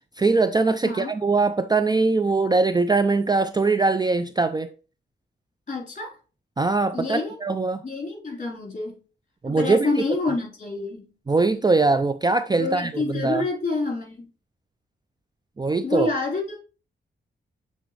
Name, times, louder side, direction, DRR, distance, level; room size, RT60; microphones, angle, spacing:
voice 1, 0.2-4.7 6.6-7.8 9.4-10.0 11.3-13.4 15.6-16.1, right 3 dB, 20° right, 0.4 m, -22 dB
voice 2, 5.7-6.2 6.9-7.3 7.8-9.0 9.4-11.1 12.6-14.3 15.8-16.6, left 3 dB, 40° left, 3.7 m, -28 dB
8.0 x 4.1 x 3.1 m
cardioid pair, 85°, 20 cm